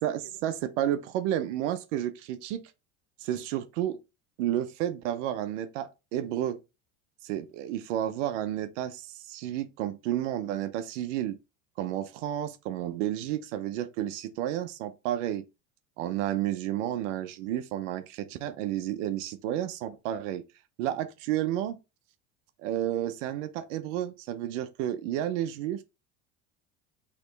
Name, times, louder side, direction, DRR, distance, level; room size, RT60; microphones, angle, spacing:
voice 1, 0.0-2.6 3.2-4.0 4.4-6.6 7.2-11.4 11.8-15.4 16.0-20.4 20.8-21.8 22.6-25.8, right 12 dB, 80° right, 0.7 m, -31 dB
4.3 x 3.0 x 3.8 m
supercardioid pair, 105°, 36 cm